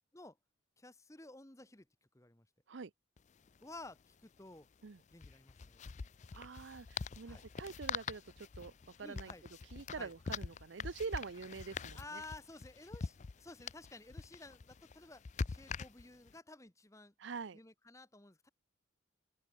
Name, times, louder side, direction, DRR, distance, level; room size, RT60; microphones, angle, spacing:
voice 1, 0.8-1.9 2.1-2.5 3.6-4.7 5.1-5.8 7.3-7.4 9.0-9.4 9.9-10.1 12.0-17.1 17.5-18.5, left 2 dB, 15° left, 1.2 m, -53 dB
sound 1, 3.2-3.3 3.5-3.6 5.1-16.3, left 5 dB, 35° left, 0.4 m, -44 dB
voice 2, 6.3-8.7 9.0-9.3 9.7-12.2 17.2-17.6, right 5 dB, 65° right, 0.6 m, -45 dB
open air
head